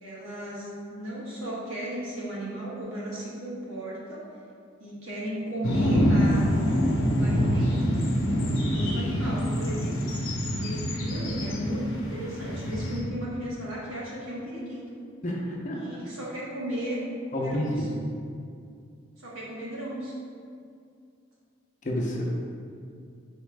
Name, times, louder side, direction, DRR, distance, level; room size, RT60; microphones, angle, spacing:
voice 1, 0.0-4.3 4.8-6.5 7.0-8.1 8.3-10.2 10.5-11.8 12.1-15.0 15.7-17.0 17.3-17.9 19.2-20.1, right 1 dB, 85° right, -6 dB, 1.3 m, -35 dB
sound 1, 5.6-13.0, equal, 85° left, 0.8 m, -25 dB
voice 2, 15.2-16.0 17.3-17.8 21.8-22.2, equal, 35° left, -2 dB, 0.6 m, -29 dB
4.3 x 3.6 x 3.3 m, 2.4 s
head